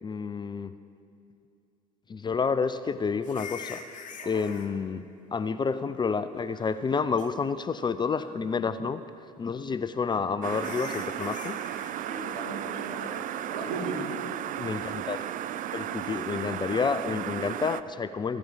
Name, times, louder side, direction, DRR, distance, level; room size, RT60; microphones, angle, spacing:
voice 1, 0.0-0.7 2.1-3.8 4.3-5.0 5.3-9.0 9.4-11.6 14.6-15.3 15.7-18.4, left 5 dB, 25° left, 12 dB, 0.5 m, -29 dB
sound 1, 3.2-4.7 6.3-6.9 7.2-7.3 7.9-8.5 9.8-9.9 10.5-12.0 16.0-16.2, left 6 dB, 40° left, 1.3 m, -44 dB
sound 2, 10.4-17.8, right 11 dB, 40° right, 0.5 m, -34 dB
voice 2, 12.0-13.2 13.5-14.0, right 3 dB, 75° right, -2 dB, 3.0 m, -37 dB
15.5 x 11.5 x 5.1 m, 2.5 s
hypercardioid pair, 70°, 20 cm